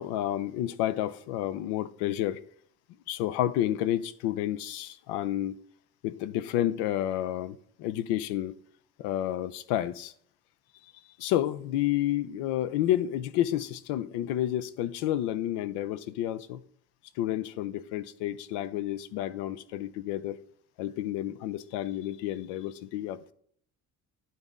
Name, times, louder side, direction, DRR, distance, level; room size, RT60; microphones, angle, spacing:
voice 1, 0.0-2.4 3.1-5.6 6.0-8.5 9.0-10.1 11.2-16.6 17.2-20.4 20.8-23.3, left 12 dB, 85° left, 0.6 m, -30 dB
10.5 x 4.1 x 3.6 m
supercardioid pair, 70°, 40 cm